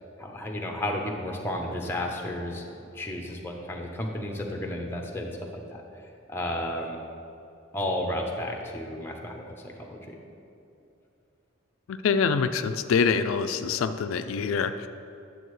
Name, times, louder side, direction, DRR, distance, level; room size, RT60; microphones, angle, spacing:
voice 1, 0.2-2.6 2.9-5.8 6.3-7.0 7.7-10.2, left 1 dB, 10° left, 1 dB, 0.7 m, -32 dB
voice 2, 11.9-14.9, left 5 dB, 85° left, 9 dB, 0.3 m, -25 dB
9.9 x 7.1 x 3.1 m, 2.7 s
head